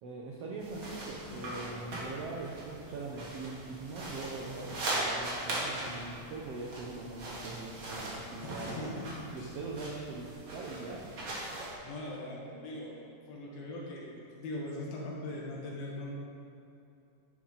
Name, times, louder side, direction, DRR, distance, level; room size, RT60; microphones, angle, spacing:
voice 1, 0.0-8.9 9.3-11.2, right 3 dB, 85° right, -2 dB, 1.3 m, -42 dB
sound 1, 0.6-11.7, right 1 dB, 40° right, 2.3 m, -40 dB
voice 2, 8.4-9.5 11.8-13.0 13.3-16.1, left 1 dB, 90° left, -3 dB, 3.7 m, -41 dB
11.0 x 10.0 x 4.1 m, 2.7 s
omnidirectional pair, 4.1 m